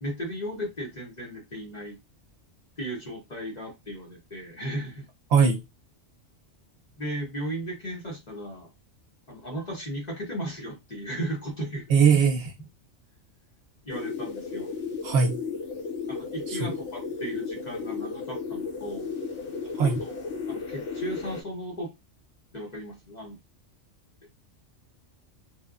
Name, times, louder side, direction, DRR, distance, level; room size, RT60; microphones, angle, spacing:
voice 1, 0.0-2.0 2.8-5.1 7.0-8.7 9.3-11.8 13.8-14.7 16.1-19.1 19.8-21.9 22.5-23.4, right 1 dB, 40° left, 0.8 m, -36 dB
voice 2, 11.9-12.4 15.0-15.4 16.5-16.7 19.7-20.0, right 6 dB, 65° right, 0.8 m, -20 dB
sound 1, 13.9-21.4, left 4 dB, 70° left, 1.0 m, -34 dB
3.1 x 2.1 x 2.3 m
omnidirectional pair, 1.3 m